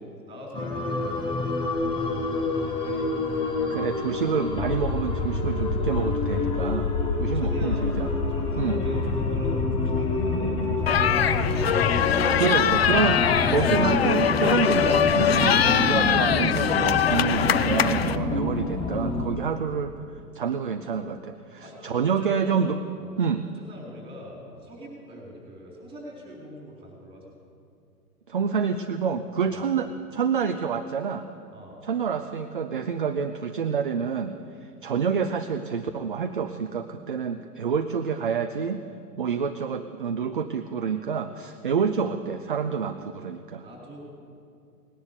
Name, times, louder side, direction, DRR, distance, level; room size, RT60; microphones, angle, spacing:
voice 1, 0.0-1.9 2.3-3.0 7.2-11.5 21.6-22.7 23.0-23.1 23.5-27.4 29.4-29.7 31.5-31.8 43.6-44.1, equal, 10° right, -2 dB, 4.1 m, -43 dB
sound 1, 0.5-19.3, left 3 dB, 10° left, 0.9 m, -27 dB
voice 2, 3.7-6.9 7.2-8.1 8.6-8.8 12.4-20.0 20.3-22.8 23.2-23.5 28.3-31.3 31.8-34.4 34.8-38.8 39.2-43.6, right 6 dB, 35° right, 8 dB, 0.4 m, -27 dB
sound 2, 10.9-18.2, left 8 dB, 40° left, 0.4 m, -22 dB
18.5 x 10.5 x 6.8 m, 2.5 s
figure-of-eight pair, 115°, 49 cm